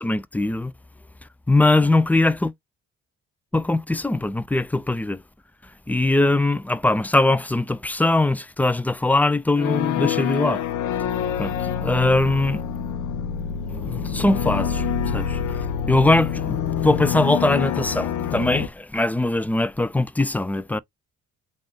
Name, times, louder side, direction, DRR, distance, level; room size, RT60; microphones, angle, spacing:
voice 1, 0.0-0.7 1.5-2.5 3.5-5.2 5.9-10.6 11.4-11.6 11.8-12.6 13.7-14.8 15.1-15.4 15.9-16.6 16.8-20.8, left 2 dB, 5° left, 0.3 m, -21 dB
sound 1, 9.5-18.7, left 8 dB, 75° left, 0.8 m, -26 dB
3.8 x 2.5 x 3.4 m
cardioid pair, 90°, 30 cm